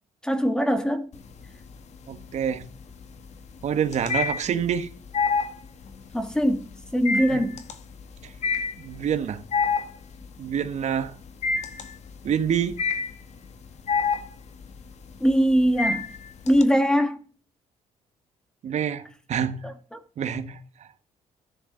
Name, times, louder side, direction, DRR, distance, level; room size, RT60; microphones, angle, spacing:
voice 1, 0.2-1.1 6.1-7.6 15.2-16.1 16.5-17.2 19.6-20.0, equal, 5° left, 1.7 m, -22 dB
sound 1, 1.1-1.8 2.1-16.6, left 5 dB, 60° left, 1.7 m, -28 dB
voice 2, 2.1-2.6 3.6-4.9 7.3-7.5 8.2-8.3 8.8-9.4 10.4-11.1 12.2-12.8 18.6-19.0 19.3-19.6 20.2-20.6, right 8 dB, 60° right, 1.5 m, -26 dB
14.0 x 10.0 x 3.9 m
cardioid pair, 105°, 13 cm